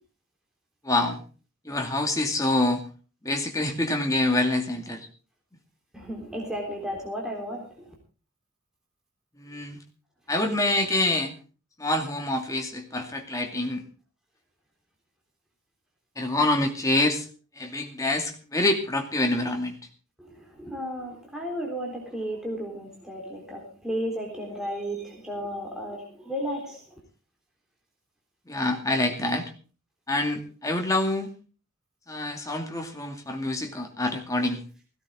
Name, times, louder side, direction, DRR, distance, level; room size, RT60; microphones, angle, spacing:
voice 1, 0.8-1.2 1.6-2.8 3.2-5.1 9.4-9.8 10.3-11.3 11.8-13.8 16.2-17.3 17.6-19.8 28.5-29.5 30.1-31.3 32.1-34.6, left 2 dB, 15° left, 3 dB, 2.4 m, -26 dB
voice 2, 5.9-7.9 20.2-27.0, equal, 5° right, -1 dB, 3.7 m, -34 dB
16.5 x 16.5 x 3.7 m, 0.37 s
head